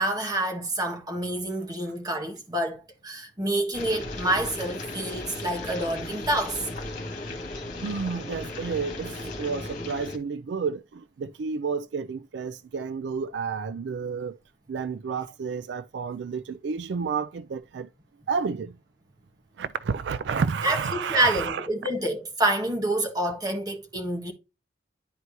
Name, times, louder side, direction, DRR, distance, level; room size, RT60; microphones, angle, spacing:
voice 1, 0.0-6.6 20.6-24.3, right 1 dB, 20° right, 1.4 m, -27 dB
sound 1, 3.7-10.2, left 2 dB, 45° left, 2.0 m, -36 dB
voice 2, 7.8-10.8 11.2-14.3 14.7-17.9 18.3-18.7 19.6-21.7, right 5 dB, 75° right, 0.4 m, -30 dB
11.0 x 4.5 x 2.7 m
head